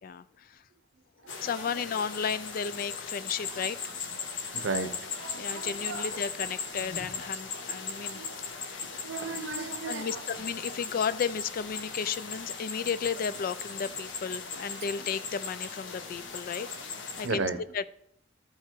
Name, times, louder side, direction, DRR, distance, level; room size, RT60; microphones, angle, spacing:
voice 1, 0.0-0.6 1.4-3.8 5.3-8.2 8.7-8.8 9.9-16.7 17.2-17.8, left 6 dB, 45° left, 0.3 m, -33 dB
sound 1, 1.3-17.3, left 5 dB, 70° left, 1.0 m, -38 dB
voice 2, 4.5-6.1 8.1-8.3 8.8-10.2 17.2-17.6, right 3 dB, 70° right, 0.8 m, -35 dB
12.5 x 4.7 x 4.5 m
head